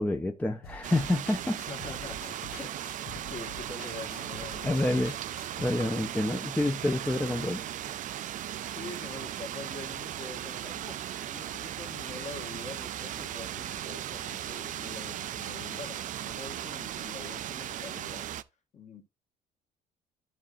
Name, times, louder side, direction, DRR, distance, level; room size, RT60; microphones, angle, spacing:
voice 1, 0.0-1.6 4.6-5.1 5.6-7.6, left 1 dB, 10° left, 0.6 m, -28 dB
sound 1, 0.6-5.7, left 3 dB, 65° left, 1.2 m, -46 dB
sound 2, 0.8-18.4, right 11 dB, 50° right, 0.4 m, -37 dB
voice 2, 1.6-2.8 3.3-4.8 8.6-18.3 18.7-19.0, left 4 dB, 45° left, 1.6 m, -45 dB
12.5 x 4.9 x 2.6 m
cardioid pair, 110°, 17 cm